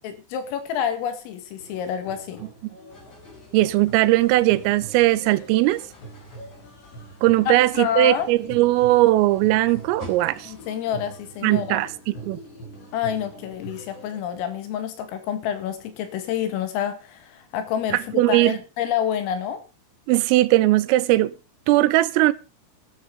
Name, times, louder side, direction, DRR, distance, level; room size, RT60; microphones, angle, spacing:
voice 1, 0.0-2.4 7.5-8.3 10.5-11.8 12.9-19.6, left 9 dB, 85° left, 4.6 m, -28 dB
sound 1, 1.6-14.2, right 2 dB, 60° left, 7.6 m, -43 dB
sound 2, 2.9-10.7, left 1 dB, 35° left, 6.2 m, -48 dB
voice 2, 3.5-5.8 7.2-10.5 11.4-11.9 12.2-12.4 17.9-18.6 20.1-21.3 21.7-22.3, right 17 dB, 90° right, 3.5 m, -19 dB
13.0 x 12.5 x 5.3 m
omnidirectional pair, 5.8 m